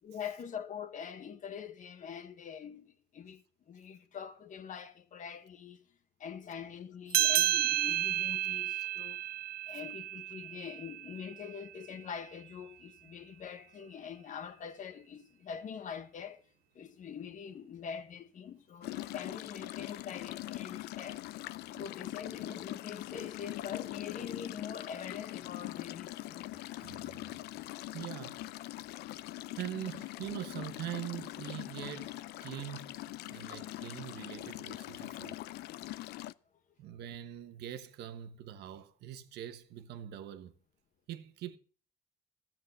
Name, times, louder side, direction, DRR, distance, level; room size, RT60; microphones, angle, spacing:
voice 1, 0.0-5.8 6.2-9.2 9.7-16.4 16.7-21.3 21.7-26.5 35.8-36.0, left 7 dB, 50° left, 1.5 m, -44 dB
sound 1, 7.1-12.0, right 14 dB, 60° right, 0.5 m, -32 dB
sound 2, 18.8-36.3, left 16 dB, 75° left, 0.5 m, -42 dB
voice 2, 26.8-27.4 27.9-28.5 29.5-32.2 32.4-33.0 33.3-35.4 36.8-40.5 41.1-41.6, right 11 dB, 75° right, 1.2 m, -43 dB
13.5 x 7.6 x 6.4 m
cardioid pair, 110°, 17 cm